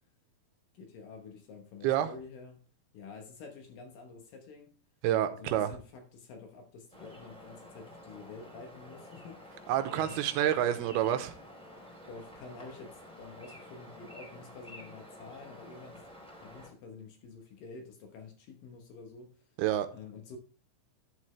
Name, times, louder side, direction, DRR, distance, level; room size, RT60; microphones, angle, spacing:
voice 1, 0.7-2.6 2.9-4.8 5.3-10.2 12.1-16.1 16.4-19.6 19.9-20.4, left 4 dB, 70° left, 2.6 m, -49 dB
voice 2, 5.0-5.7 9.7-11.3 19.6-19.9, right 11 dB, 80° right, 2.7 m, -28 dB
sound 1, 6.9-16.7, equal, ahead, 3.0 m, -50 dB
11.0 x 7.4 x 3.2 m
omnidirectional pair, 4.6 m